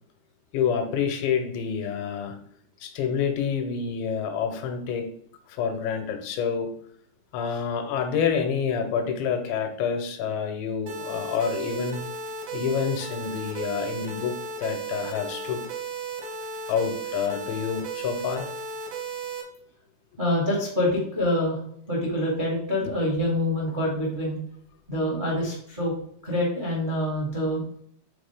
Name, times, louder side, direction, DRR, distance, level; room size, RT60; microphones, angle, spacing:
voice 1, 0.5-2.4 2.8-5.2 5.5-6.7 7.3-12.0 12.5-15.6 16.7-18.5, left 7 dB, 90° left, 7 dB, 3.0 m, -28 dB
sound 1, 10.9-19.4, right 4 dB, 70° right, 1.5 m, -35 dB
voice 2, 20.2-21.6 21.9-24.4 24.9-25.9 26.2-27.6, left 1 dB, 90° right, -5 dB, 0.4 m, -26 dB
8.7 x 3.9 x 3.5 m, 0.67 s
omnidirectional pair, 5.1 m